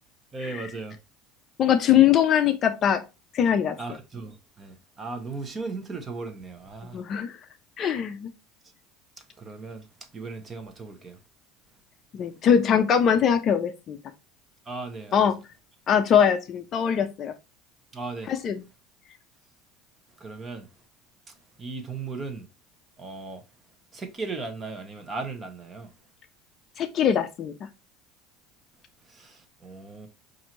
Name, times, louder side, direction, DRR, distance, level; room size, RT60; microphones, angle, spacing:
voice 1, 0.3-1.0 3.8-7.0 9.4-9.9 10.1-11.2 14.7-15.3 17.9-18.3 20.2-20.7 21.6-22.5 23.0-23.4 23.9-25.9 29.1-30.1, right 3 dB, 20° right, 0.8 m, -37 dB
voice 2, 1.6-3.0 3.3-3.8 6.9-7.4 7.8-8.3 12.1-14.0 15.1-15.4 15.9-17.3 18.3-18.6 26.8-27.5, left 8 dB, 35° left, 0.5 m, -22 dB
5.4 x 2.6 x 3.0 m
cardioid pair, 140°, 0 cm